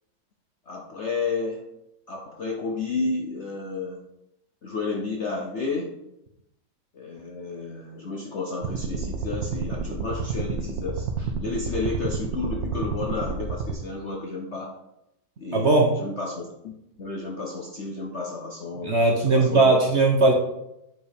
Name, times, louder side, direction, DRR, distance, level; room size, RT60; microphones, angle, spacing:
voice 1, 0.7-1.7 2.1-4.0 4.6-5.9 6.9-14.8 15.4-16.7 17.0-19.8, left 3 dB, 55° left, 0 dB, 0.8 m, -32 dB
sound 1, 8.6-13.7, right 4 dB, 75° right, 1.5 m, -30 dB
voice 2, 15.5-15.9 18.8-20.3, right 2 dB, 45° right, 1 dB, 0.9 m, -19 dB
8.3 x 4.6 x 5.1 m, 0.85 s
omnidirectional pair, 2.1 m